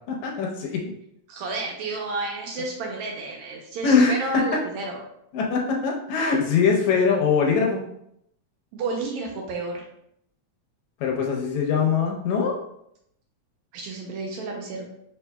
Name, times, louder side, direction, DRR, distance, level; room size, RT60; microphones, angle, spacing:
voice 1, 0.1-0.8 3.8-4.2 5.3-7.8 11.0-12.6, left 5 dB, 75° left, 0 dB, 1.9 m, -22 dB
voice 2, 1.3-5.0 8.7-9.8 13.7-14.9, right 3 dB, 75° right, 0 dB, 1.8 m, -31 dB
4.7 x 4.4 x 2.2 m, 0.75 s
omnidirectional pair, 3.6 m